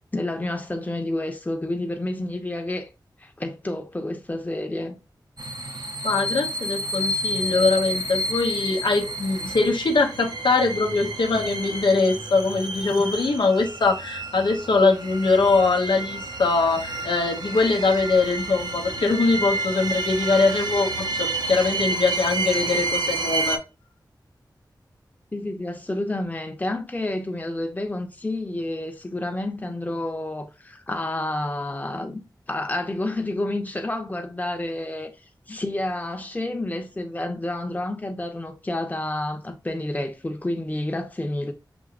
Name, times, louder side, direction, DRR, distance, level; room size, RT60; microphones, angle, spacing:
voice 1, 0.1-2.9 3.2-5.0 12.9-13.1 25.3-32.2 32.5-35.1 35.5-41.5, left 1 dB, 20° left, 0.8 m, -29 dB
sound 1, 5.4-23.6, right 2 dB, 65° right, 0.7 m, -30 dB
voice 2, 6.0-23.6, left 3 dB, 85° left, 0.8 m, -22 dB
6.1 x 2.8 x 2.5 m
wide cardioid pair, 70°, 8 cm